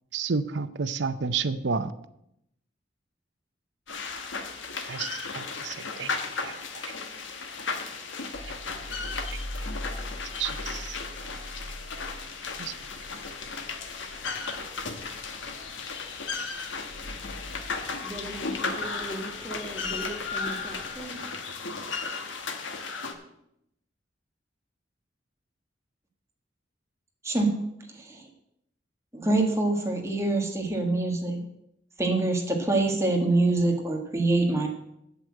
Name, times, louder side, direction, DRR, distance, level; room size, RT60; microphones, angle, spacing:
voice 1, 0.1-1.9 4.9-6.1 6.4-6.6 8.4-8.5 9.6-9.7 10.4-11.0 12.6-12.7, right 5 dB, 65° right, 13 dB, 0.6 m, -31 dB
sound 1, 3.9-23.1, left 4 dB, 80° left, 1.2 m, -35 dB
sound 2, 8.3-20.9, left 1 dB, 50° left, 1.9 m, -43 dB
voice 2, 17.0-21.9, right 1 dB, ahead, -2 dB, 1.5 m, -41 dB
voice 3, 27.2-28.3 29.1-31.4 32.0-34.7, right 2 dB, 15° right, 1 dB, 1.6 m, -25 dB
8.2 x 8.1 x 7.5 m, 0.80 s
head